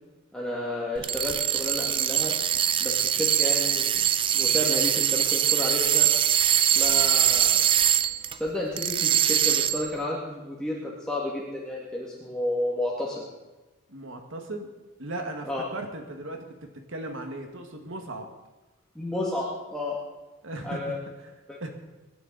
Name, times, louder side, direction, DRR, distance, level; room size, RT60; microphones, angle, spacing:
voice 1, 0.3-2.3 2.8-4.1 4.3-6.1 6.6-7.6 8.3-13.2 15.5-15.6 19.0-20.0 20.6-21.0 21.5-21.7, left 1 dB, 5° left, -5 dB, 2.0 m, -31 dB
sound 1, 1.0-8.4 8.8-9.9, right 10 dB, 25° right, 0.4 m, -23 dB
voice 2, 13.9-14.7 15.0-18.3 20.4-20.8 21.6-21.7, right 2 dB, 60° right, 4 dB, 1.6 m, -37 dB
24.5 x 11.0 x 4.0 m, 1.1 s
head